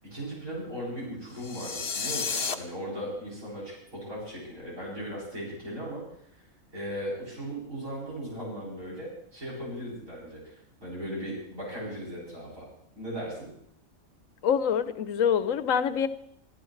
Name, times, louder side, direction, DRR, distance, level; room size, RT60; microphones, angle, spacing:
voice 1, 0.0-6.0 6.7-10.6 10.8-12.7 13.0-13.5, equal, 80° right, -5 dB, 8.6 m, -37 dB
sound 1, 1.4-2.5, left 5 dB, 55° left, 1.2 m, -31 dB
voice 2, 14.4-16.1, left 8 dB, 80° left, 12 dB, 1.2 m, -25 dB
26.5 x 14.0 x 3.3 m, 0.69 s
omnidirectional pair, 1.4 m